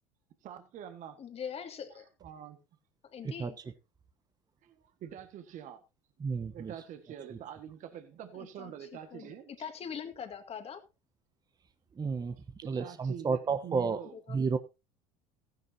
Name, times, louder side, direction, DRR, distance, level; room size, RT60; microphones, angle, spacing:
voice 1, 0.4-1.2 2.2-2.6 4.6-5.8 6.5-9.7 12.6-14.1, right 9 dB, 50° right, 9 dB, 1.7 m, -45 dB
voice 2, 1.2-2.0 3.0-3.6 8.3-10.8 14.3-14.4, left 7 dB, 35° left, 7 dB, 2.3 m, -42 dB
voice 3, 6.2-6.7 11.9-14.0 14.3-14.6, right 5 dB, 25° right, 11 dB, 1.0 m, -32 dB
15.0 x 10.5 x 2.8 m, 0.26 s
hypercardioid pair, 80°, 17 cm